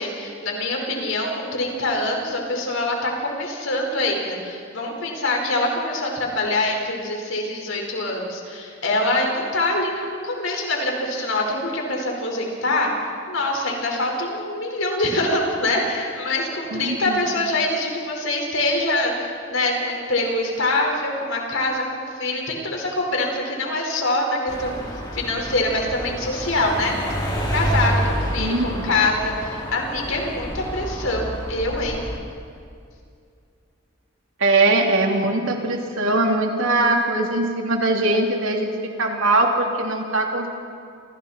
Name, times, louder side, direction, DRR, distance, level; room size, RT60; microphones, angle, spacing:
voice 1, 0.0-12.9 13.3-24.8 25.1-27.0 27.5-32.0, left 2 dB, 85° left, 0 dB, 5.2 m, -24 dB
voice 2, 16.7-17.3 28.4-28.9 34.4-38.7 39.0-40.5, right 2 dB, 85° right, 1 dB, 3.1 m, -21 dB
sound 1, 24.5-32.2, equal, 20° left, 3.3 m, -28 dB
29.0 x 27.0 x 4.5 m, 2.4 s
head